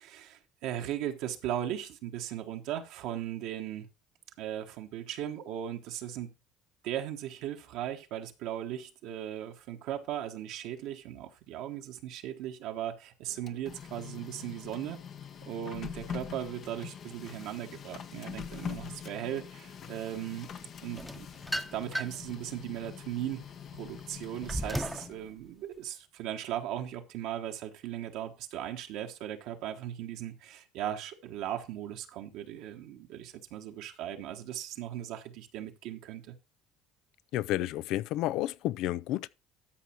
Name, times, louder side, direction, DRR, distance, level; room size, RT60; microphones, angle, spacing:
voice 1, 0.0-3.9 4.4-6.3 6.8-15.0 15.4-20.5 20.8-21.3 21.7-23.5 23.7-36.4, right 11 dB, 75° right, 1.2 m, -38 dB
Printer, 13.3-25.3, left 7 dB, 50° left, 1.1 m, -44 dB
sound 1, 20.9-22.3 22.8-25.1, equal, ahead, 0.9 m, -36 dB
voice 2, 37.3-39.3, left 15 dB, 70° left, 0.4 m, -31 dB
13.5 x 5.0 x 4.4 m
hypercardioid pair, 75°, 0 cm